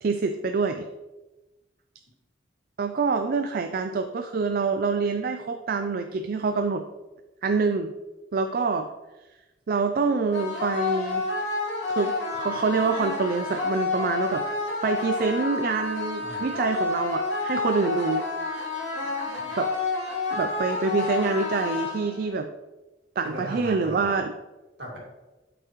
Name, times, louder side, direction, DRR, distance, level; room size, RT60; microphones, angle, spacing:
voice 1, 0.0-0.9 2.8-6.8 7.4-7.9 8.3-8.9 9.7-11.3 11.9-14.4 14.8-18.2 19.6-19.7 20.3-22.5 23.2-24.3, right 4 dB, 55° right, 7 dB, 0.4 m, -26 dB
sound 1, 10.3-22.3, left 3 dB, 85° left, 2.6 m, -29 dB
voice 2, 23.2-24.1 24.8-25.0, right 1 dB, 70° right, -3 dB, 2.2 m, -37 dB
7.9 x 6.0 x 3.1 m, 1.1 s
head